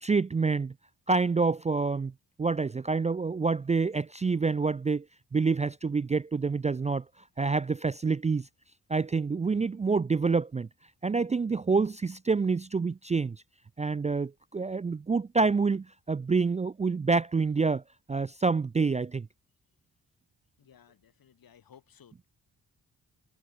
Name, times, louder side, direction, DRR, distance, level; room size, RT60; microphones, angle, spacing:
voice 1, 0.0-0.7 1.1-2.1 2.4-5.0 5.3-7.0 7.4-8.5 8.9-10.7 11.0-13.4 13.8-17.8 18.1-19.3, right 4 dB, 20° right, 0.4 m, -27 dB
voice 2, 20.6-22.3, left 8 dB, 70° left, 7.5 m, -58 dB
cardioid pair, 85°, 36 cm